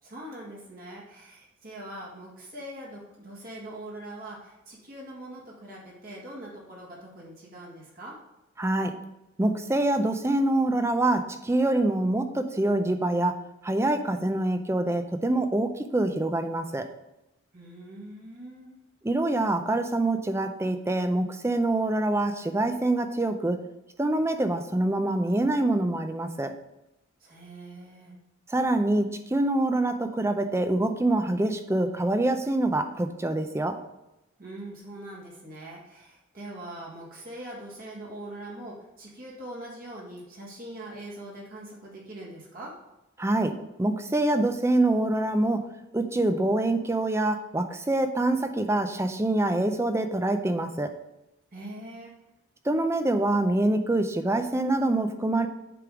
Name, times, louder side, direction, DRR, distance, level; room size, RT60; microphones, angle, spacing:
voice 1, 0.0-8.1 17.5-18.8 27.2-28.1 34.4-42.7 51.5-52.1, right 1 dB, 45° right, -4 dB, 1.6 m, -42 dB
voice 2, 8.6-9.0 9.4-16.9 19.0-23.6 24.0-26.5 28.5-33.8 43.2-45.7 45.9-50.9 52.7-55.5, right 2 dB, 15° right, 8 dB, 0.4 m, -25 dB
7.6 x 3.5 x 4.9 m, 0.93 s
head